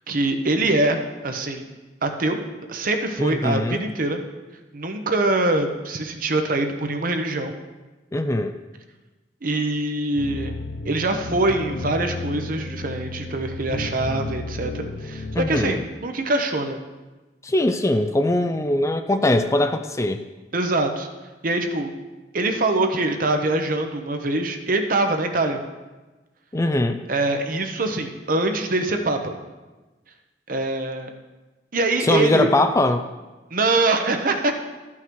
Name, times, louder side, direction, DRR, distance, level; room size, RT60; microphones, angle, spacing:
voice 1, 0.1-1.7 2.0-2.4 2.7-4.2 4.7-7.5 9.4-10.5 10.8-16.8 20.5-21.1 21.4-21.9 22.3-25.6 27.1-29.3 30.5-31.1 31.7-32.5 33.5-34.5, right 2 dB, 50° right, 5 dB, 0.9 m, -23 dB
voice 2, 3.2-3.8 8.1-8.5 15.3-15.8 17.4-20.3 26.5-27.1 32.0-33.0, left 1 dB, 15° left, 8 dB, 0.4 m, -21 dB
sound 1, 10.2-15.8, left 2 dB, 60° left, 0.6 m, -33 dB
13.0 x 5.7 x 4.7 m, 1.2 s
head